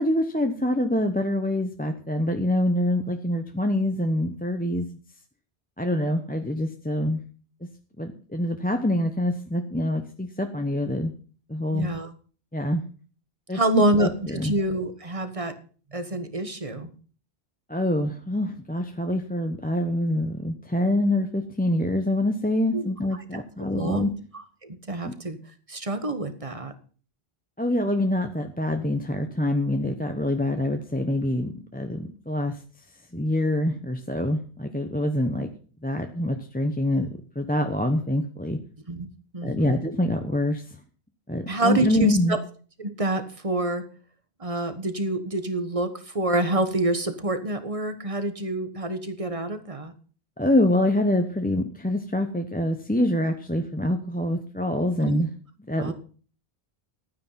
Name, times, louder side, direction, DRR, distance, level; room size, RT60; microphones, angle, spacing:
voice 1, 0.0-4.9 5.8-7.2 7.6-7.7 8.0-11.1 11.5-11.9 12.5-12.8 13.5-14.5 17.7-24.1 25.0-25.1 27.6-32.6 33.1-35.5 35.8-37.1 37.3-38.6 39.4-40.6 41.3-42.4 50.4-55.3 55.7-55.9, left 1 dB, 10° left, 5 dB, 0.9 m, -25 dB
voice 2, 11.7-12.1 13.5-15.5 15.9-16.9 22.7-22.9 23.3-23.4 23.7-24.1 24.6-25.4 25.7-26.7 38.9-39.1 39.3-39.8 41.5-42.4 42.8-43.8 44.4-49.9 55.0-55.2 55.8-55.9, right 1 dB, 35° right, 9 dB, 1.5 m, -27 dB
12.5 x 9.4 x 5.8 m, 0.40 s
omnidirectional pair, 1.1 m